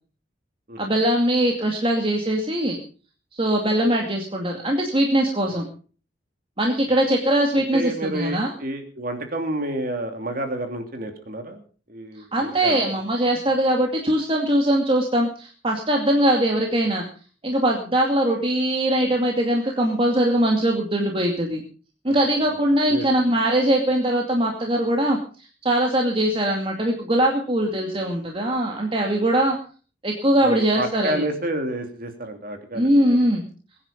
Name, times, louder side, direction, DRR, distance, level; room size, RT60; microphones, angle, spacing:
voice 1, 0.8-2.8 3.3-5.7 6.6-8.5 12.3-17.0 17.4-21.6 22.0-29.6 30.0-31.3 32.7-33.4, right 1 dB, 30° right, 1 dB, 2.4 m, -21 dB
voice 2, 7.7-11.6 11.9-12.3 12.6-12.9 22.1-22.2 22.4-22.6 22.9-23.2 30.4-33.3, right 1 dB, 50° right, 5 dB, 2.9 m, -29 dB
22.5 x 9.9 x 5.2 m, 0.40 s
head